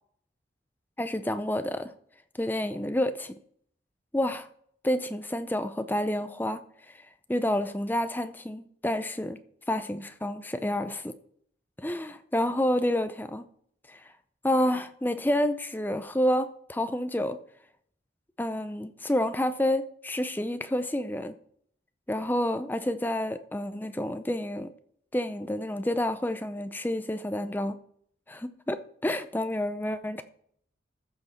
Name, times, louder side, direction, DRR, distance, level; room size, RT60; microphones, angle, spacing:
voice 1, 1.0-1.9 2.4-3.4 4.1-4.5 4.8-6.6 6.9-7.0 7.3-9.4 9.7-11.2 11.8-13.4 13.9-14.0 14.4-17.4 18.4-21.3 22.1-24.7 25.1-27.8 28.3-30.2, left 1 dB, 10° left, 10 dB, 0.5 m, -29 dB
14.0 x 6.0 x 4.3 m, 0.65 s
head